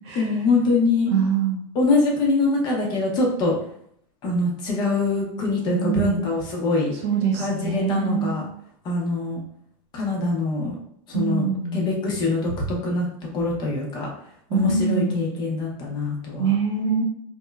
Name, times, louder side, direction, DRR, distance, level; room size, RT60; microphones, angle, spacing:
voice 1, 0.2-1.1 1.7-3.5 4.2-6.9 7.4-8.4 8.8-9.4 9.9-10.8 11.1-13.1 13.3-14.1 14.5-16.5, left 3 dB, 25° left, -2 dB, 0.5 m, -23 dB
voice 2, 1.1-1.6 5.6-6.3 6.9-8.3 11.1-11.9 14.5-15.3 16.4-17.0, right 6 dB, 50° right, 0 dB, 0.6 m, -24 dB
2.9 x 2.0 x 2.2 m, 0.68 s
supercardioid pair, 155°, 18 cm